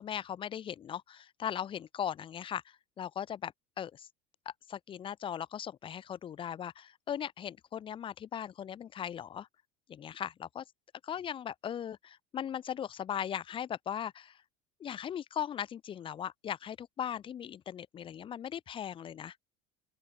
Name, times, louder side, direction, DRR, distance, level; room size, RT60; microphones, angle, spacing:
voice 1, 0.0-4.1 4.5-9.5 9.9-10.6 11.0-14.4 14.8-19.4, left 9 dB, 30° left, 5.8 m, -38 dB
open air
cardioid pair, 140°, 16 cm